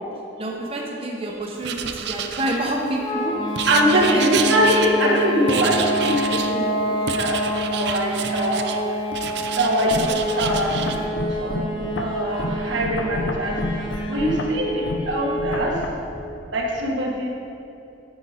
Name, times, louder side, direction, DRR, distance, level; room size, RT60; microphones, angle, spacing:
voice 1, 0.4-3.3 3.9-4.5, right 1 dB, 30° right, -1 dB, 0.8 m, -27 dB
Writing, 1.6-3.0 3.6-5.2 5.5-6.6 7.1-8.8 9.1-11.0, right 8 dB, 60° right, 0.5 m, -29 dB
sound 1, 3.0-15.8, equal, 25° left, 1.0 m, -28 dB
voice 2, 3.7-9.0 9.6-15.7 16.5-17.3, equal, 80° right, -1 dB, 1.5 m, -23 dB
sound 2, 9.9-15.9, left 2 dB, 75° left, 0.6 m, -30 dB
9.7 x 7.8 x 4.2 m, 2.8 s
head